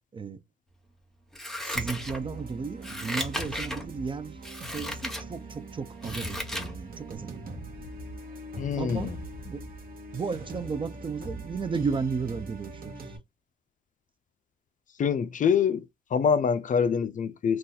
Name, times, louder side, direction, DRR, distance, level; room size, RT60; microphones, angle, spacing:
Scissors, 1.3-2.4 2.8-3.8 4.4-5.2 5.7-6.7 7.1-7.2, equal, ahead, 0.9 m, -35 dB
voice 1, 1.6-4.4 4.7-7.4 8.8-9.1 9.4-9.6 10.1-13.2, right 5 dB, 25° right, 0.4 m, -34 dB
sound 1, 1.7-13.2, right 1 dB, 45° right, 1.0 m, -41 dB
voice 2, 8.6-9.2 15.0-15.9 16.1-17.6, left 6 dB, 40° left, 0.4 m, -25 dB
2.6 x 2.4 x 3.8 m
cardioid pair, 90°, 20 cm